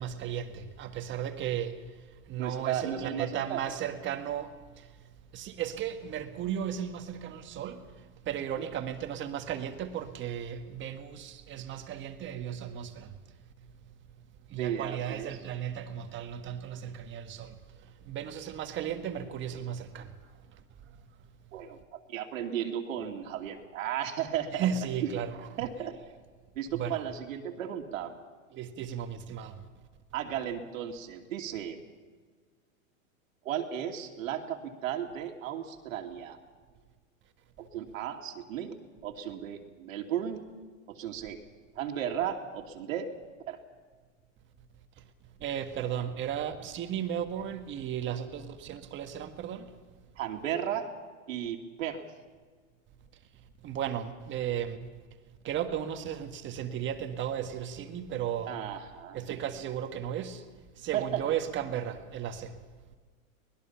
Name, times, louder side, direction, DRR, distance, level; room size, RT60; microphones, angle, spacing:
voice 1, 0.0-1.8 2.3-4.5 5.3-7.8 8.2-13.1 14.5-17.5 18.1-20.1 24.5-25.5 26.7-27.0 28.5-29.6 45.4-49.7 53.6-54.8 55.4-58.6 59.1-60.4 60.8-62.5, right 9 dB, 30° right, 1.6 m, -35 dB
voice 2, 2.4-3.8 14.6-15.3 21.5-24.7 25.0-25.1 25.6-25.9 26.6-28.1 30.1-31.8 33.4-36.4 37.6-38.8 39.0-40.4 40.9-41.4 41.8-43.1 43.5-43.6 50.2-50.9 51.3-52.0 58.5-59.2 60.9-61.2, right 9 dB, 75° right, 2.6 m, -35 dB
24.0 x 20.0 x 5.8 m
supercardioid pair, 140°, 41 cm